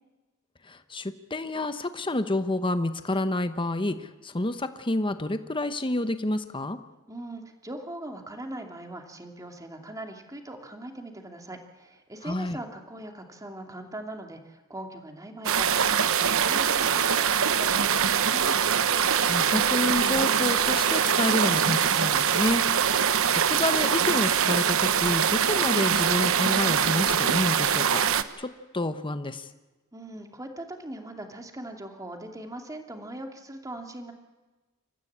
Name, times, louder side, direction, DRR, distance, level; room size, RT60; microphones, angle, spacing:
voice 1, 0.7-6.8 12.2-12.6 19.3-28.0 28.4-29.5, left 1 dB, 25° left, 10 dB, 1.0 m, -29 dB
voice 2, 7.1-18.5 29.9-34.1, right 1 dB, 15° right, 4 dB, 2.7 m, -40 dB
sound 1, 15.4-28.2, right 8 dB, 70° right, 1.0 m, -23 dB
Wind instrument woodwind instrument, 18.2-22.2, right 2 dB, 30° right, 6.1 m, -42 dB
28.0 x 14.5 x 8.7 m, 1.2 s
head